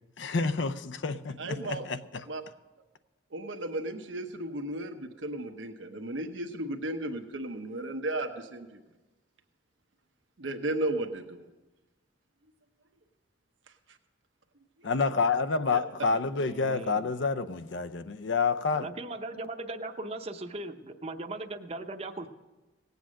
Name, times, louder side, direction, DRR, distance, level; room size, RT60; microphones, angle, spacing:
voice 1, 0.2-2.2 14.8-18.9, left 4 dB, 75° left, 0.6 m, -29 dB
voice 2, 1.4-1.9 2.3-2.4 3.3-8.7 10.4-11.4 14.8-14.9 15.7-15.8, right 1 dB, 85° right, 1.0 m, -34 dB
voice 3, 16.5-17.1 18.8-22.3, right 2 dB, 35° right, 0.7 m, -38 dB
18.0 x 8.1 x 6.3 m
head